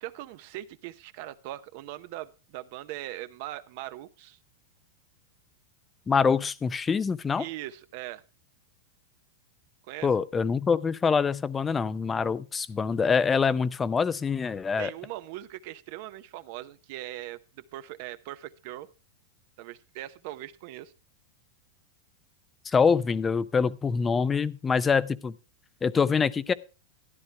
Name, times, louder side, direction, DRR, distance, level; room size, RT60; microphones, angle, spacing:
voice 1, 0.0-4.4 7.4-8.2 9.9-10.1 14.8-18.9 19.6-20.9 24.7-24.8, right 15 dB, 55° right, 0.7 m, -40 dB
voice 2, 6.1-7.5 10.0-14.9 22.7-25.3 25.8-26.5, left 5 dB, 15° left, 0.5 m, -25 dB
13.0 x 11.0 x 3.3 m
supercardioid pair, 145°, 0 cm